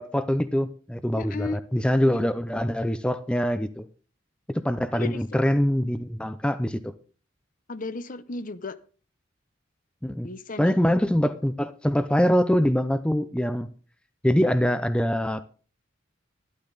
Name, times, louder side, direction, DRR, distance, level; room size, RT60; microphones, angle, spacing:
voice 1, 0.0-3.9 4.5-6.9 10.0-10.3 10.6-13.7 14.2-15.4, equal, 5° left, 0.5 m, -24 dB
voice 2, 1.1-1.6 2.1-2.3 4.9-5.2 7.7-8.8 10.2-10.7, left 3 dB, 45° left, 0.7 m, -34 dB
12.0 x 11.5 x 4.0 m
head